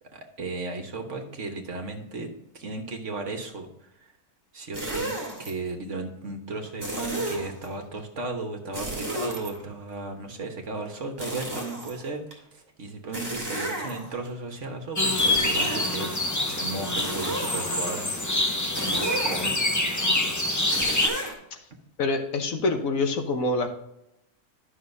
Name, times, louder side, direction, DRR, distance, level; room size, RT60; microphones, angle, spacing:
voice 1, 0.1-2.3 2.5-3.7 4.0-4.1 4.5-20.0, right 3 dB, 55° right, 3 dB, 1.5 m, -35 dB
sound 1, 4.7-5.5 6.8-7.7 8.7-10.0 11.2-12.3 13.1-14.3 15.1-16.2 16.9-17.9 18.7-19.8 20.7-21.3, right 1 dB, 10° right, 2.6 m, -33 dB
sound 2, 15.0-21.1, left 2 dB, 15° left, 0.6 m, -26 dB
voice 2, 22.0-23.8, left 2 dB, 65° left, 5 dB, 1.4 m, -26 dB
11.5 x 6.2 x 2.6 m, 0.83 s
omnidirectional pair, 1.6 m